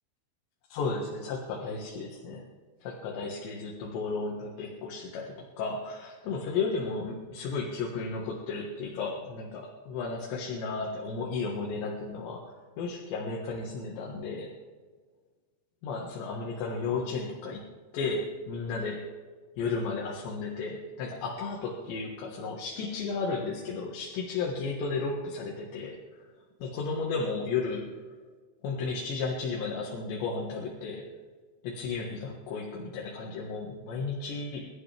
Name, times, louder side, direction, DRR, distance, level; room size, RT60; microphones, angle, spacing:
voice 1, 0.7-2.5 2.8-14.5 15.8-17.6 17.9-19.1 19.6-26.0 26.6-27.9 28.6-31.0 31.6-34.7, left 4 dB, 70° left, -1 dB, 3.6 m, -34 dB
27.0 x 12.5 x 3.4 m, 1.5 s
omnidirectional pair, 5.6 m